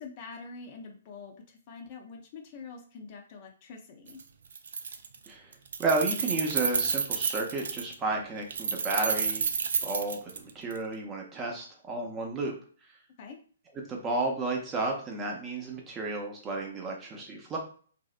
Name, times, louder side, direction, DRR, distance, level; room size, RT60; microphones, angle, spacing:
voice 1, 0.0-4.2 13.2-13.4, left 4 dB, 40° left, 2 dB, 0.6 m, -45 dB
Keys jangling, 4.1-4.2 4.5-5.3 5.5-7.9 8.5-10.8, right 6 dB, 65° right, 0.3 m, -30 dB
voice 2, 5.8-9.5 9.8-12.5 13.9-17.6, right 2 dB, 20° right, 0 dB, 0.7 m, -32 dB
2.7 x 2.0 x 2.4 m, 0.43 s
figure-of-eight pair, 130°, 0 cm